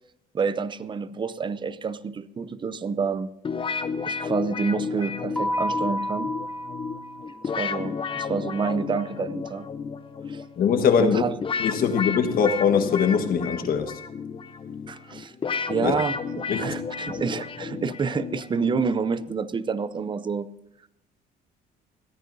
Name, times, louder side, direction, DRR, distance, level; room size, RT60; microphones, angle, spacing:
voice 1, 0.3-3.3 4.0-6.3 7.6-9.7 10.2-10.5 11.0-11.3 14.9-15.3 15.7-20.5, right 5 dB, 30° right, 15 dB, 0.6 m, -28 dB
sound 1, 3.4-19.4, left 5 dB, 30° left, 0.8 m, -32 dB
Keyboard (musical), 5.4-7.9, equal, 5° left, 2.5 m, -31 dB
voice 2, 10.6-11.2 11.6-13.9 15.8-15.9 16.5-16.6, left 7 dB, 60° left, 7 dB, 1.4 m, -22 dB
21.0 x 14.0 x 2.7 m, 0.81 s
cardioid pair, 110°, 17 cm